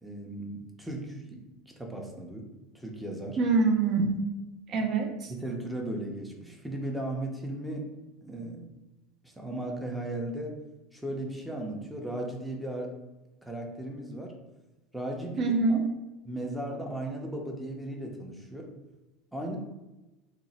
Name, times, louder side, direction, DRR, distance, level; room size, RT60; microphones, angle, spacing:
voice 1, 0.0-1.4 1.7-2.5 2.7-3.4 5.3-7.9 8.2-8.7 9.4-10.6 10.9-12.9 13.4-14.3 14.9-15.8 16.2-18.7 19.3-19.6, right 1 dB, 5° right, 1 dB, 0.6 m, -36 dB
voice 2, 3.4-4.2 4.7-5.3 15.4-15.9, right 4 dB, 45° right, 3 dB, 0.6 m, -25 dB
2.9 x 2.1 x 4.0 m, 1.0 s
supercardioid pair, 125°, 0 cm